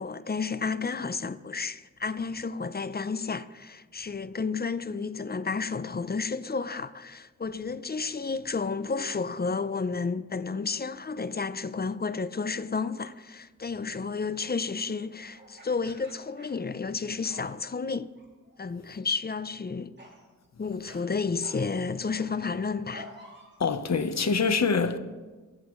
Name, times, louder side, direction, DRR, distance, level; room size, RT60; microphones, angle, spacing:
voice 1, 0.0-18.1 18.6-19.9 20.6-23.1, left 4 dB, 30° left, 0.6 m, -31 dB
sound 1, 13.0-13.3 15.3-17.0 17.2-17.8 18.2-18.7 19.0-19.3 20.0-20.2 20.8-21.0 21.4-23.6, right 1 dB, 35° right, 4.2 m, -50 dB
voice 2, 23.6-25.0, left 5 dB, 60° left, 1.1 m, -25 dB
25.0 x 15.0 x 3.2 m
wide cardioid pair, 110°, 31 cm